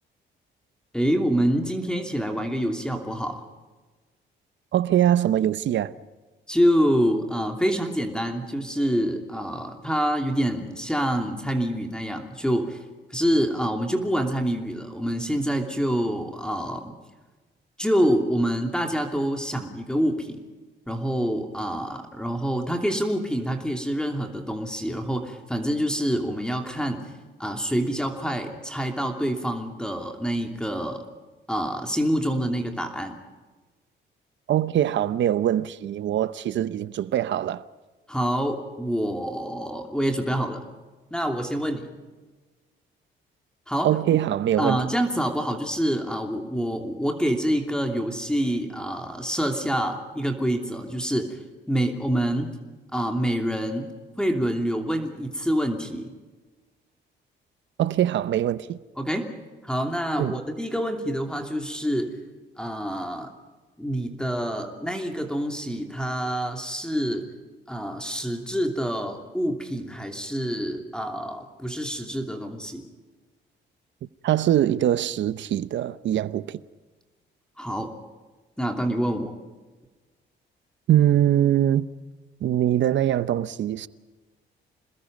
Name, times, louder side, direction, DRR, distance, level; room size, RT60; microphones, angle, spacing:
voice 1, 0.9-3.4 6.5-12.8 13.1-16.9 17.8-20.4 20.9-27.0 27.4-31.0 31.5-33.2 38.1-40.6 41.1-41.9 43.7-43.9 44.6-51.4 51.7-52.5 52.9-53.9 54.2-56.1 59.0-59.3 59.6-62.2 62.6-63.3 63.8-67.3 67.7-72.8 77.6-77.9 78.6-79.3, equal, 5° left, 2.9 m, -26 dB
voice 2, 4.7-5.9 34.5-37.6 43.8-44.8 57.8-58.8 60.2-60.3 74.2-76.6 80.9-81.9 82.4-83.9, right 11 dB, 70° right, 0.9 m, -22 dB
27.5 x 20.5 x 5.3 m
cardioid pair, 90°, 20 cm